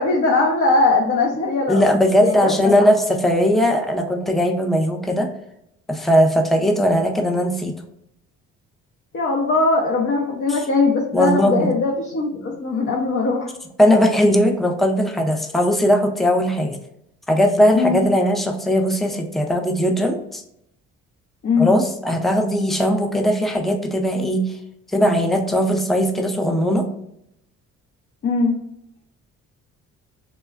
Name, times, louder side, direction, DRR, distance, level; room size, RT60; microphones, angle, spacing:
voice 1, 0.0-1.8 2.2-2.7 9.1-13.5 17.7-18.0 21.4-21.8 28.2-28.6, left 3 dB, 45° left, -1 dB, 0.6 m, -20 dB
voice 2, 1.7-5.3 5.9-7.8 10.5-10.6 11.1-11.7 13.8-16.8 17.3-20.4 21.6-24.6 24.9-26.8, equal, ahead, 3 dB, 0.4 m, -19 dB
3.0 x 2.2 x 2.3 m, 0.77 s
cardioid pair, 90°, 30 cm